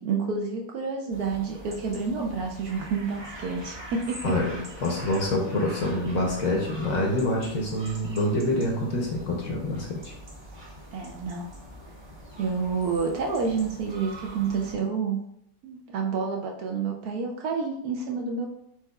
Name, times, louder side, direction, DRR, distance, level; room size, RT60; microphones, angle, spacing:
voice 1, 0.0-4.2 10.9-11.5 12.4-15.2 15.6-18.5, right 5 dB, 70° right, 1 dB, 1.0 m, -29 dB
sound 1, 1.1-14.7, right 1 dB, 25° right, 0.5 m, -44 dB
voice 2, 4.2-10.1, left 1 dB, 60° left, 0 dB, 1.0 m, -26 dB
7.8 x 2.9 x 2.3 m, 0.75 s
omnidirectional pair, 1.9 m